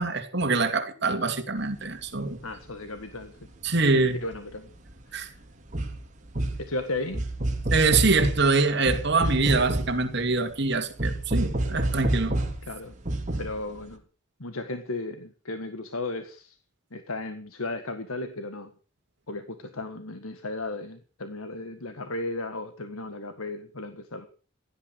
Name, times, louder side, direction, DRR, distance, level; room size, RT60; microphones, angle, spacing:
voice 1, 0.0-2.4 3.6-4.2 5.1-5.3 7.7-12.3, right 3 dB, 55° right, 2.7 m, -24 dB
sound 1, 1.7-1.8 2.0-2.1 2.7-5.0 5.4-13.5 13.8-13.9, right 1 dB, 35° right, 2.7 m, -29 dB
voice 2, 2.4-3.4 4.2-4.7 5.1-5.4 6.6-7.2 12.6-12.9 13.4-14.0 14.4-16.6 16.9-18.7 19.3-24.3, left 2 dB, 85° left, 1.7 m, -35 dB
16.5 x 11.5 x 6.4 m
head